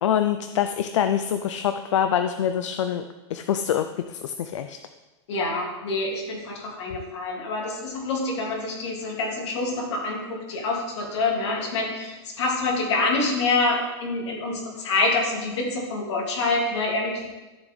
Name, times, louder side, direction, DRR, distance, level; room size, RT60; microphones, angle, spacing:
voice 1, 0.0-3.0 3.3-4.8, left 9 dB, 90° left, 8 dB, 0.6 m, -25 dB
voice 2, 5.3-17.3, left 3 dB, 70° left, -1 dB, 3.2 m, -26 dB
13.0 x 7.2 x 4.1 m, 1.1 s
supercardioid pair, 170°, 15 cm